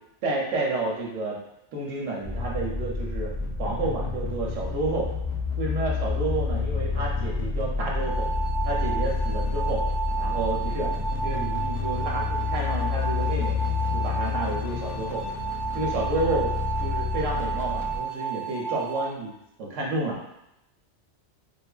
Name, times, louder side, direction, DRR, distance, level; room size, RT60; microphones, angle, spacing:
voice 1, 0.2-1.4 1.7-5.1 5.6-8.3 8.6-9.9 10.2-13.6 13.9-15.2 15.7-16.5 16.8-19.3 19.6-20.2, right 2 dB, 80° right, -2 dB, 1.0 m, -30 dB
sound 1, 2.2-18.0, left 4 dB, 70° left, 0.4 m, -29 dB
sound 2, 7.8-19.1, right 6 dB, 30° left, 0.9 m, -32 dB
2.6 x 2.4 x 2.3 m, 0.86 s
omnidirectional pair, 1.2 m